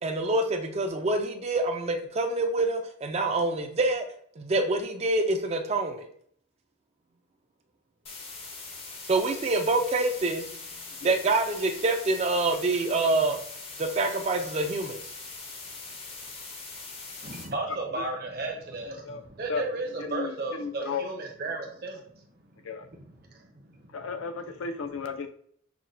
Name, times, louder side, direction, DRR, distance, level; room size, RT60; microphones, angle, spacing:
voice 1, 0.0-4.1 4.4-6.1 9.0-10.5 11.0-13.4 13.8-15.0, right 2 dB, 30° right, 5 dB, 0.4 m, -26 dB
sound 1, 8.1-17.5, left 3 dB, 30° left, 0.5 m, -42 dB
voice 2, 17.2-22.1 22.4-22.6 22.9-24.1, right 2 dB, 50° right, 1 dB, 0.8 m, -35 dB
voice 3, 20.0-21.0 22.6-22.9 23.9-25.3, left 5 dB, 85° left, 7 dB, 0.5 m, -34 dB
5.7 x 2.2 x 2.5 m, 0.63 s
head